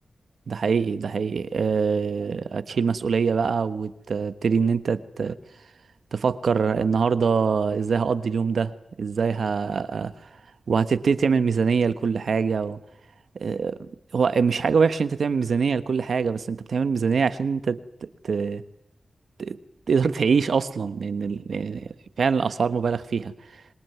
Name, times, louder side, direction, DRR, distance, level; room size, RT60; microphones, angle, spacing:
voice 1, 0.5-5.3 6.1-8.7 9.0-10.1 10.7-12.8 13.4-17.8 18.2-18.6 19.4-19.6 19.9-21.9 22.2-23.3, right 5 dB, 85° right, 1.3 m, -24 dB
26.0 x 22.5 x 9.5 m
wide cardioid pair, 105°, 0 cm